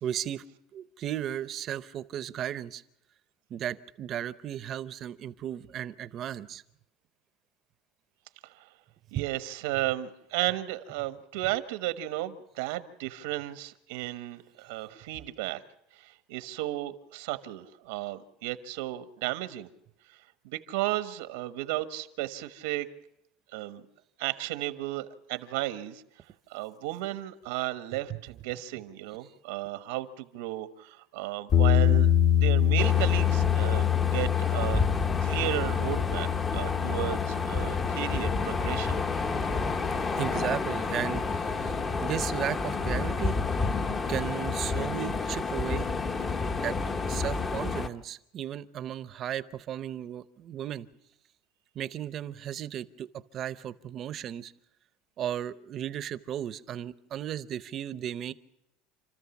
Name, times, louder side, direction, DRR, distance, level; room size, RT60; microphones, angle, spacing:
voice 1, 0.0-0.4 0.7-2.8 3.5-6.6 9.2-9.3 15.1-15.3 28.1-28.2 40.2-43.4 44.1-45.9 46.6-46.8 47.1-50.9 51.7-54.5 55.2-58.3, right 10 dB, 35° right, 15 dB, 0.7 m, -35 dB
voice 2, 9.1-15.6 15.9-19.7 20.4-22.9 23.5-23.8 24.2-26.0 26.5-34.8 35.2-39.0, right 16 dB, 85° right, 11 dB, 1.2 m, -34 dB
sound 1, 31.5-40.4, left 10 dB, 40° left, 1.2 m, -26 dB
sound 2, 32.8-47.9, left 4 dB, 20° left, 0.8 m, -30 dB
29.0 x 13.5 x 7.2 m, 0.84 s
cardioid pair, 150°, 0 cm